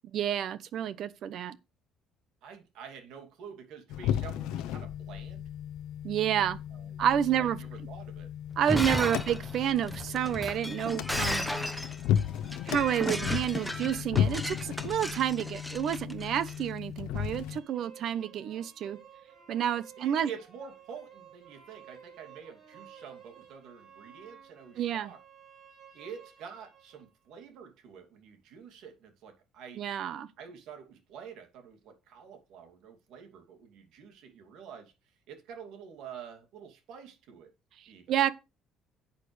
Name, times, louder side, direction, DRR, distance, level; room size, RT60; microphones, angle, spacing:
voice 1, 0.0-1.6 6.0-6.6 7.0-7.6 8.6-11.5 12.7-19.0 19.5-20.3 24.8-25.1 29.8-30.3 38.1-38.3, right 10 dB, 50° right, 0.8 m, -29 dB
voice 2, 2.4-5.5 6.7-7.0 7.3-8.3 9.0-9.3 20.0-25.2 25.9-29.9 30.4-37.5 37.9-38.1, right 7 dB, 70° right, 2.6 m, -48 dB
sound 1, 3.9-17.6, left 10 dB, 80° left, 0.6 m, -35 dB
Shatter, 8.5-16.6, equal, ahead, 0.9 m, -35 dB
sound 2, 17.1-27.1, right 8 dB, 25° right, 6.4 m, -54 dB
11.5 x 8.3 x 3.3 m
cardioid pair, 160°, 0 cm